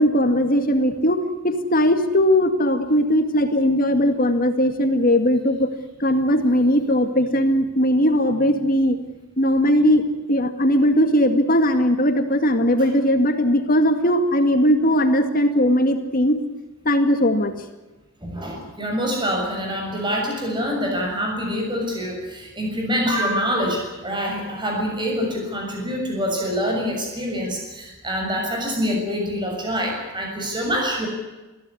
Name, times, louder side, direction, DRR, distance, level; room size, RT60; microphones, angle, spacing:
voice 1, 0.0-5.7 6.0-9.0 9.4-10.0 10.3-16.4 16.9-17.5, equal, 40° left, 7 dB, 2.1 m, -19 dB
voice 2, 18.2-31.1, equal, 20° right, 1 dB, 6.8 m, -25 dB
22.0 x 16.5 x 10.0 m, 1.1 s
head